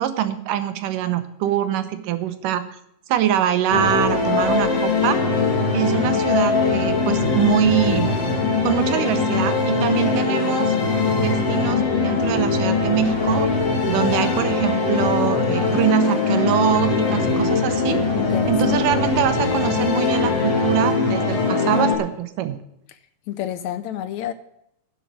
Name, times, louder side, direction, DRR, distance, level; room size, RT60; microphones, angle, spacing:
voice 1, 0.0-2.7 3.1-5.2 5.7-8.1 8.6-10.8 11.2-13.5 13.8-18.0 18.5-22.6, right 10 dB, 85° right, 11 dB, 2.6 m, -23 dB
sound 1, 3.7-22.0, left 4 dB, 55° left, 3.1 m, -21 dB
voice 2, 18.2-19.1 23.3-24.3, left 11 dB, 75° left, 12 dB, 1.8 m, -30 dB
10.0 x 7.5 x 8.9 m, 0.78 s
omnidirectional pair, 3.7 m